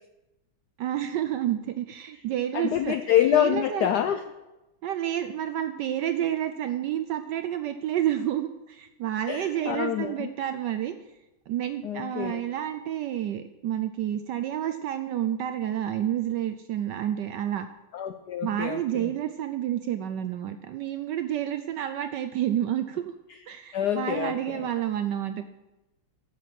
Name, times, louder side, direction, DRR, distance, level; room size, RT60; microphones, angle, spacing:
voice 1, 0.8-3.0 3.3-3.9 4.8-10.9 11.5-17.7 18.4-23.1 23.5-25.5, right 11 dB, 75° right, 9 dB, 1.0 m, -29 dB
voice 2, 2.5-4.2 9.3-10.3 11.8-12.4 17.9-19.1 23.5-24.7, left 10 dB, 80° left, 9 dB, 0.9 m, -27 dB
8.6 x 7.6 x 7.5 m, 1.0 s
omnidirectional pair, 2.3 m